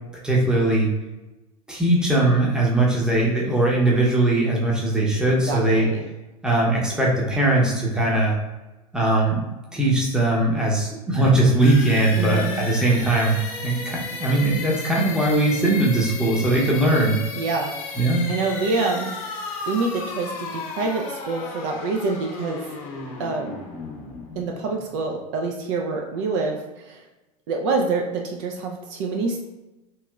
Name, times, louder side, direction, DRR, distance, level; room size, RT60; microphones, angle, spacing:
voice 1, 0.2-0.9 1.7-5.9 6.4-8.3 8.9-9.4 9.7-13.4 13.6-17.2 18.0-18.2, right 2 dB, 5° right, -4 dB, 0.8 m, -20 dB
voice 2, 5.4-6.0 12.2-12.6 17.4-18.0 18.3-19.1 19.7-22.6 23.2-23.6 24.4-27.0 27.5-29.4, right 4 dB, 50° right, 2 dB, 0.4 m, -26 dB
sound 1, 11.6-25.3, left 4 dB, 45° left, 0.7 m, -34 dB
3.0 x 2.8 x 2.3 m, 1.1 s
hypercardioid pair, 85°, 20 cm